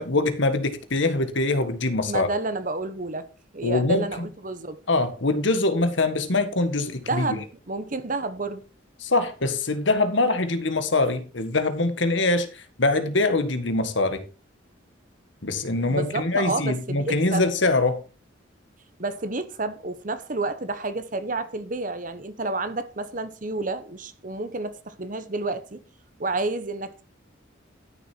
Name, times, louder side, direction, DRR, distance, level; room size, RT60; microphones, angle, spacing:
voice 1, 0.0-2.3 3.6-4.3 4.9-7.2 9.0-14.2 15.4-18.0, left 2 dB, 70° left, 1.5 m, -23 dB
voice 2, 2.0-3.3 3.5-4.8 7.1-8.6 15.9-17.5 19.0-25.8 26.2-27.0, right 2 dB, 40° right, 1.0 m, -30 dB
12.5 x 6.7 x 4.5 m
head